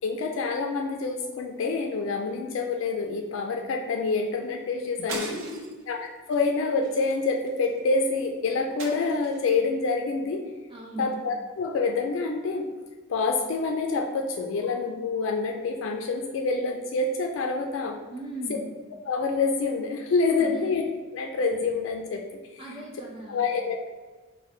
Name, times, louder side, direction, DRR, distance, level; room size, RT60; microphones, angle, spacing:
voice 1, 0.0-5.3 5.9-6.0 6.3-10.4 11.0-12.7 13.1-18.0 18.5-18.6 19.1-20.8 21.1-22.2 22.5-22.6 23.0-23.9, left 4 dB, 80° left, 3 dB, 0.3 m, -27 dB
voice 2, 5.0-5.7 10.7-11.2 18.1-18.7 20.4-20.6 22.6-23.4, right 1 dB, 25° right, -4 dB, 0.8 m, -38 dB
sound 1, 5.1-5.8 6.3-6.5 6.8-7.8 8.8-9.6, right 3 dB, 90° right, 0.6 m, -39 dB
5.4 x 2.1 x 3.1 m, 1.3 s
head